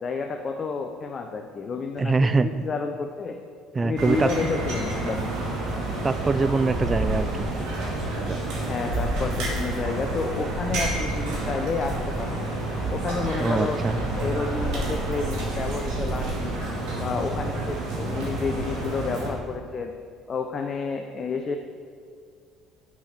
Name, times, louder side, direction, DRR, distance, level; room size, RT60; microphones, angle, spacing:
voice 1, 0.0-3.4 3.8-5.4 8.6-12.4 12.9-13.8 14.2-16.6 17.0-19.9 20.3-21.6, left 4 dB, 40° left, 4 dB, 0.6 m, -30 dB
voice 2, 2.0-2.5 3.7-4.3 6.0-7.5 8.3-8.4 13.4-14.0, right 3 dB, 25° right, 12 dB, 0.4 m, -23 dB
sound 1, 4.0-19.3, right 2 dB, 70° right, 2.4 m, -29 dB
6.2 x 5.9 x 7.2 m, 2.1 s
hypercardioid pair, 70°, 0 cm